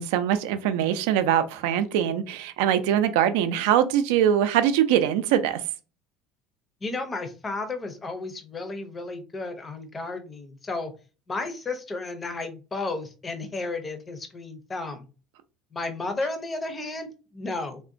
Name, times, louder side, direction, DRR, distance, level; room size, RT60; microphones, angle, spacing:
voice 1, 0.0-5.6, right 10 dB, 80° right, 0.4 m, -22 dB
voice 2, 6.8-10.9 11.3-15.1 15.7-17.8, left 3 dB, 20° left, 0.5 m, -33 dB
3.6 x 2.1 x 2.5 m
cardioid pair, 155°, 0 cm